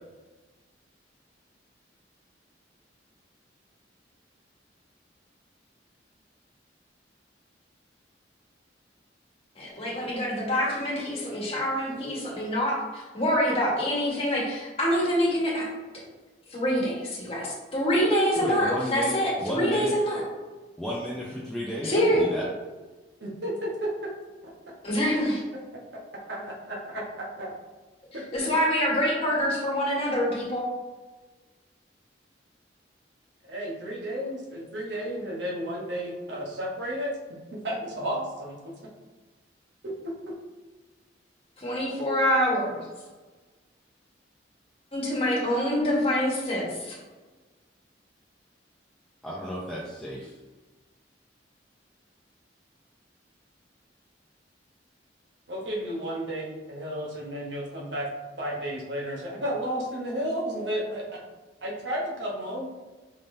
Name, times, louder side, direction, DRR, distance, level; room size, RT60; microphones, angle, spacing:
voice 1, 9.6-15.7 16.5-20.2 21.8-22.2 24.8-25.4 28.1-30.6 41.6-42.8 44.9-47.0, equal, 35° left, -4 dB, 1.4 m, -26 dB
voice 2, 18.3-20.0 20.8-22.5 49.2-50.4, equal, 5° left, -6 dB, 0.5 m, -33 dB
voice 3, 23.2-24.1 24.4-24.5 25.7-25.8 26.3-27.5 28.1-28.2 33.4-37.1 37.5-38.6 39.8-40.3 55.5-58.1 58.4-61.0 61.6-62.7, equal, 70° right, -2 dB, 1.1 m, -32 dB
5.2 x 3.6 x 2.7 m, 1.3 s
head